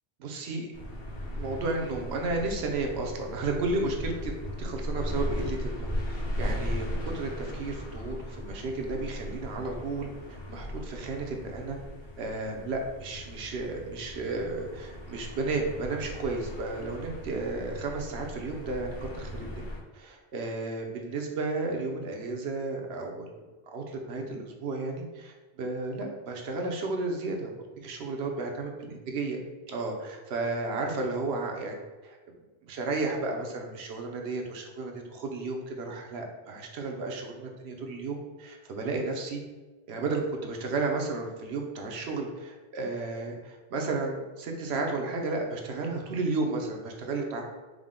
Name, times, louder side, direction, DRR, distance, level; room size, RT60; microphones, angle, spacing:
voice 1, 0.2-0.7 1.3-4.3 4.6-11.8 12.2-19.5 19.9-23.3 23.7-27.5 27.8-29.4 29.7-31.8 32.0-32.2 32.6-39.4 39.9-47.4, right 3 dB, 85° right, 2 dB, 0.9 m, -33 dB
sound 1, 0.7-19.8, equal, 65° left, 1.1 m, -37 dB
4.8 x 2.1 x 3.6 m, 1.3 s
omnidirectional pair, 1.1 m